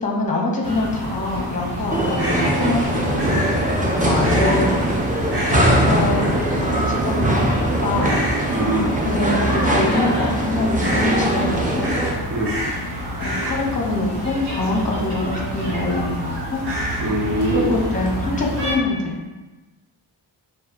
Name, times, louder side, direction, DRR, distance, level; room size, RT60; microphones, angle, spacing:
voice 1, 0.0-3.4 4.0-4.9 5.5-8.1 9.0-11.9 13.2-16.6 17.5-19.1, left 2 dB, 15° left, -1 dB, 0.8 m, -24 dB
sound 1, 0.6-18.7, right 1 dB, 60° right, 1.4 m, -28 dB
sound 2, 1.9-12.1, right 1 dB, 20° right, 0.7 m, -21 dB
voice 2, 8.5-8.9 12.3-12.6 17.0-17.7, right 1 dB, 45° right, -1 dB, 0.9 m, -23 dB
4.5 x 2.5 x 4.5 m, 1.2 s
wide cardioid pair, 110°, 45 cm